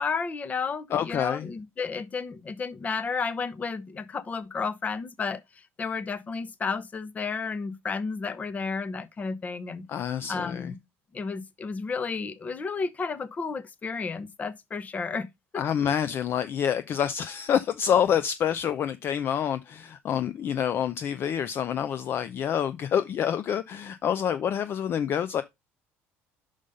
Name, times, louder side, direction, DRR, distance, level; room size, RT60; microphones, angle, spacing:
voice 1, 0.0-5.4 5.8-9.9 10.3-10.8 11.1-15.3 15.5-15.6, left 5 dB, 30° left, 0.9 m, -32 dB
voice 2, 0.9-1.5 9.9-10.7 15.6-25.4, left 9 dB, 45° left, 0.5 m, -27 dB
5.6 x 4.9 x 5.1 m
cardioid pair, 115°, 5 cm